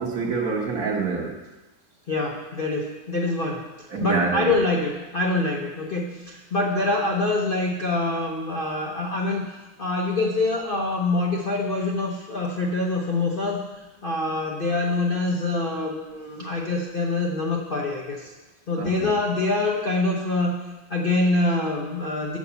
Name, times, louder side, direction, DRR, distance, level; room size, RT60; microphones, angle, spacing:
voice 1, 0.0-1.4 3.9-4.5 18.8-19.1, right 4 dB, 50° right, 0 dB, 1.3 m, -26 dB
voice 2, 2.1-3.6 4.0-9.5 9.8-13.6 14.0-18.3 18.7-20.5 20.9-22.4, left 2 dB, 55° left, -1 dB, 0.6 m, -25 dB
7.6 x 5.3 x 6.8 m, 1.1 s
omnidirectional pair, 2.2 m